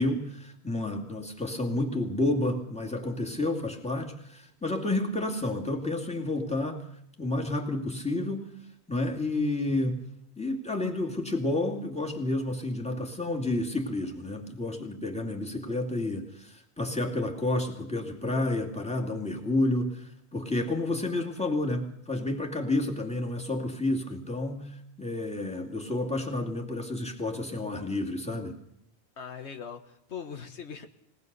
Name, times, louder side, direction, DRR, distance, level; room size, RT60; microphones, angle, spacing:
voice 1, 0.0-6.9 7.2-8.5 8.9-10.0 10.4-28.6, left 2 dB, 5° left, 1 dB, 2.4 m, -30 dB
voice 2, 29.2-30.9, left 7 dB, 85° left, 7 dB, 1.7 m, -40 dB
20.5 x 19.5 x 6.8 m, 0.77 s
omnidirectional pair, 1.1 m